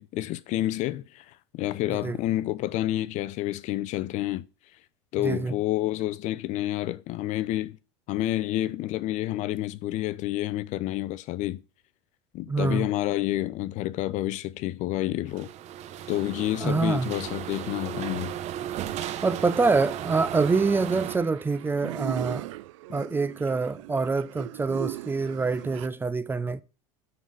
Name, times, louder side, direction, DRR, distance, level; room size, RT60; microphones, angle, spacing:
voice 1, 0.0-4.5 5.1-7.8 8.1-11.6 12.3-15.5 16.1-18.4, left 14 dB, 50° left, 0.5 m, -29 dB
voice 2, 5.2-5.5 12.5-12.9 16.6-17.1 19.2-22.5 22.9-26.6, right 4 dB, 15° right, 0.5 m, -25 dB
sound 1, 15.3-21.2, right 11 dB, 45° right, 0.9 m, -35 dB
sound 2, 19.5-25.9, right 18 dB, 80° right, 0.5 m, -39 dB
9.4 x 3.9 x 6.4 m
supercardioid pair, 105°, 16 cm